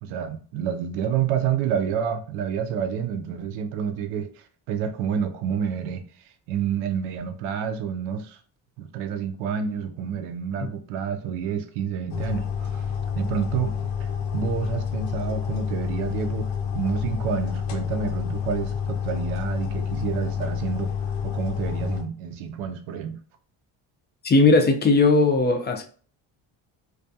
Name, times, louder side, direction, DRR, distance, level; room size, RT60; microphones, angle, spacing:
voice 1, 0.0-6.0 6.5-8.4 8.8-20.9 21.2-23.2, right 8 dB, 90° right, 0.5 m, -29 dB
sound 1, 12.1-22.0, left 7 dB, 80° left, 0.7 m, -29 dB
voice 2, 24.2-25.8, left 3 dB, 25° left, 0.3 m, -18 dB
2.3 x 2.3 x 2.6 m
supercardioid pair, 75°, 48 cm